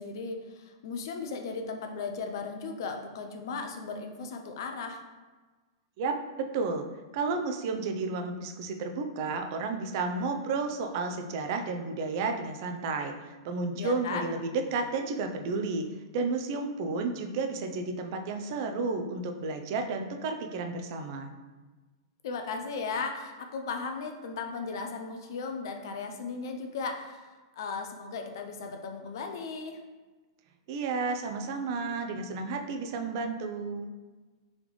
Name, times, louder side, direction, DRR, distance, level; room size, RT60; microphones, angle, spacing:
voice 1, 0.0-5.0 13.7-14.3 22.2-29.8, left 4 dB, 65° left, 4 dB, 0.6 m, -36 dB
voice 2, 6.0-6.9 7.1-15.9 16.1-21.3 30.7-33.9, right 3 dB, 55° right, 5 dB, 0.5 m, -32 dB
4.0 x 3.3 x 3.1 m, 1.3 s
hypercardioid pair, 115°, 2 cm